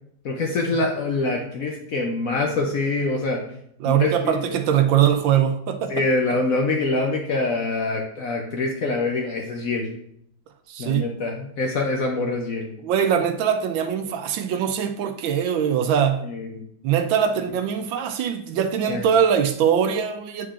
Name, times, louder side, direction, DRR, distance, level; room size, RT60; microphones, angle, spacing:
voice 1, 0.2-3.4 3.8-4.6 5.9-9.9 10.8-12.7 16.2-16.6 18.9-19.0, left 3 dB, 65° left, 0.8 m, -25 dB
voice 2, 3.8-5.9 10.7-11.1 12.8-16.3 16.8-20.5, right 8 dB, 80° right, 1.4 m, -22 dB
8.6 x 4.6 x 2.4 m
omnidirectional pair, 2.1 m